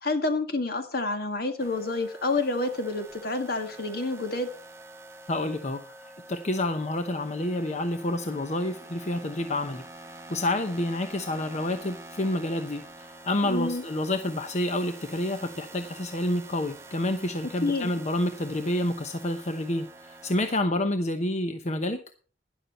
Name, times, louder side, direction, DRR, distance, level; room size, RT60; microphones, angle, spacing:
voice 1, 0.0-4.5 13.4-13.8 17.6-17.9, left 3 dB, 60° left, 7 dB, 1.9 m, -28 dB
sound 1, 1.6-20.6, right 2 dB, 15° right, 1.6 m, -47 dB
voice 2, 5.3-5.8 6.3-9.8 10.3-22.0, left 1 dB, 40° left, 7 dB, 0.9 m, -28 dB
12.0 x 11.0 x 4.3 m, 0.38 s
head